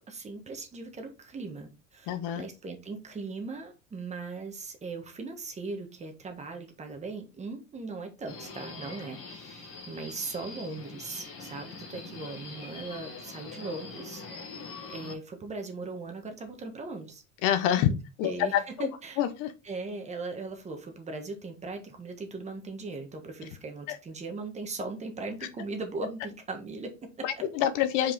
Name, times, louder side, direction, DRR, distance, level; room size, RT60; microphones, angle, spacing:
voice 1, 0.0-14.2 14.9-17.2 17.9-18.0 18.2-19.2 19.6-27.3, right 3 dB, 20° right, 4 dB, 1.4 m, -39 dB
voice 2, 2.1-2.5 17.4-17.9 18.2-18.9 19.2-19.5 23.9-24.0 27.2-28.1, left 11 dB, 60° left, 11 dB, 1.0 m, -26 dB
Subway metro underground, 8.3-15.1, left 4 dB, 40° left, 1.7 m, -43 dB
5.5 x 4.9 x 3.9 m, 0.28 s
cardioid pair, 145°, 36 cm